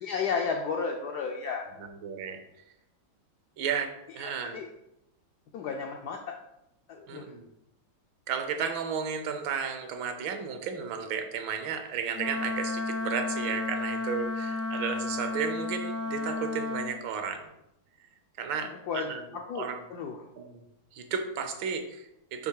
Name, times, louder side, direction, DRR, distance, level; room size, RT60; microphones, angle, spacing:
voice 1, 0.0-1.6 4.2-4.7 5.5-6.3 6.9-7.3 18.9-19.1 19.5-20.2, left 5 dB, 75° left, 2 dB, 0.9 m, -33 dB
voice 2, 1.8-2.4 3.6-4.6 7.1-7.5 8.3-17.5 18.4-19.2 19.5-19.8 20.4-20.6 20.9-22.5, right 6 dB, 75° right, 7 dB, 1.4 m, -33 dB
Wind instrument woodwind instrument, 12.1-17.0, left 3 dB, 20° right, 0.4 m, -32 dB
6.9 x 2.9 x 4.7 m, 0.84 s
omnidirectional pair, 2.2 m